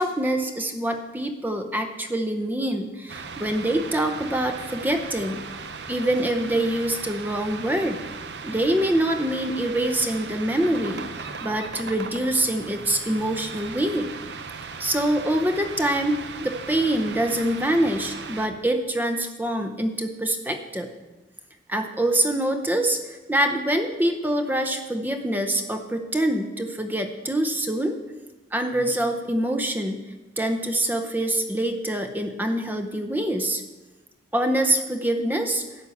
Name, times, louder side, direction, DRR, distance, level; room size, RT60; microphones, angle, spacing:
voice 1, 0.0-5.4 5.9-8.0 8.4-11.1 11.4-14.1 14.8-20.9 21.7-28.0 28.5-30.0 30.4-33.6 34.3-35.6, right 1 dB, 10° right, 6 dB, 0.7 m, -25 dB
sound 1, 3.1-18.5, right 5 dB, 65° right, 0.7 m, -37 dB
11.5 x 5.6 x 8.3 m, 1.1 s
head